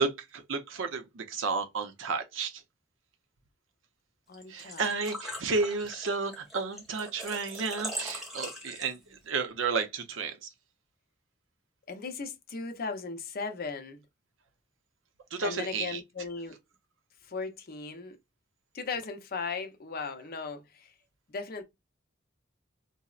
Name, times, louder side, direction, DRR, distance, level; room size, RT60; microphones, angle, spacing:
voice 1, 0.0-2.6 4.5-10.5 15.3-16.0, right 4 dB, 85° right, 0.6 m, -32 dB
voice 2, 4.3-4.9 11.9-14.0 15.4-16.6 17.2-18.2 18.7-20.9 21.3-21.6, left 4 dB, 50° left, 0.6 m, -37 dB
Engine / Trickle dribble / Fill (with liquid), 4.3-9.2, equal, ahead, 0.7 m, -41 dB
3.9 x 2.0 x 2.4 m
head